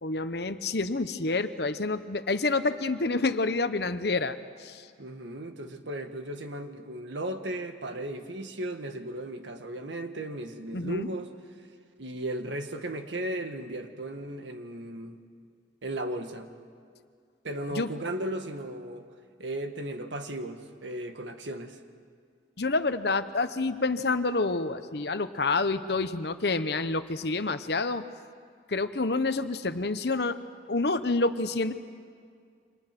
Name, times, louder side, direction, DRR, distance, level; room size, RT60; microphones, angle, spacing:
voice 1, 0.0-4.9 10.7-11.1 17.7-17.9 22.6-28.0 28.7-30.4 30.7-31.7, left 3 dB, 65° left, 11 dB, 1.0 m, -28 dB
voice 2, 5.0-11.3 12.0-15.2 15.8-16.5 17.4-19.1 19.4-21.8, right 1 dB, 85° right, 6 dB, 1.7 m, -36 dB
29.0 x 26.0 x 6.1 m, 2.1 s
head